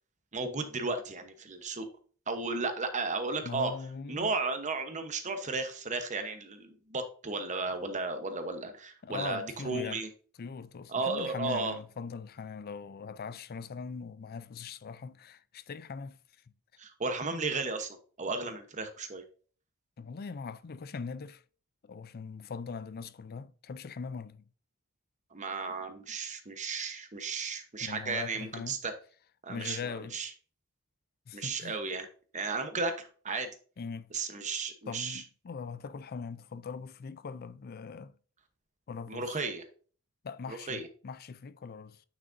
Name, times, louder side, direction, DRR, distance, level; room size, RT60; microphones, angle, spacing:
voice 1, 0.3-1.9 2.3-3.7 4.1-10.1 10.9-11.8 16.8-19.2 25.3-28.9 29.4-30.3 31.3-32.1 32.3-33.5 34.1-35.2 39.1-39.6 40.5-40.9, right 3 dB, 35° right, 1.0 m, -34 dB
voice 2, 3.4-4.3 9.0-10.0 10.4-16.2 20.0-21.4 21.8-24.4 27.8-28.8 29.5-30.2 31.3-31.8 33.8-34.1 34.9-38.1 38.9-39.4 40.2-42.0, left 5 dB, 45° left, 0.4 m, -41 dB
9.3 x 6.1 x 2.6 m
head